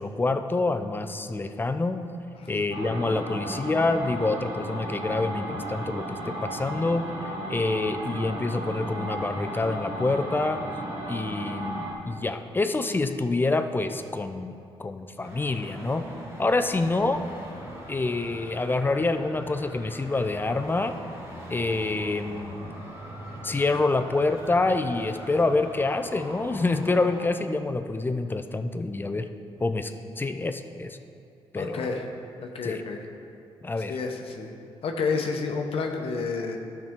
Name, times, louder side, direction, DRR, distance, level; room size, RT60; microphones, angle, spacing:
voice 1, 0.0-2.0 2.5-7.0 7.5-10.6 11.1-14.5 14.8-16.0 16.4-17.2 17.9-21.0 21.5-22.7 23.4-29.3 29.6-29.9 30.2-31.0 31.5-31.9 32.6-32.8 33.6-34.0, left 3 dB, 20° left, 8 dB, 0.5 m, -27 dB
sound 1, 2.7-11.9, right 1 dB, 90° right, 1.3 m, -34 dB
Traffic noise roadway noise, 15.2-27.3, right 1 dB, 30° right, 1.9 m, -42 dB
voice 2, 31.5-32.0 32.4-33.0 33.9-34.5 34.8-36.6, left 4 dB, 65° left, 3 dB, 0.9 m, -30 dB
12.0 x 5.8 x 3.7 m, 2.6 s
cardioid pair, 85°, 10 cm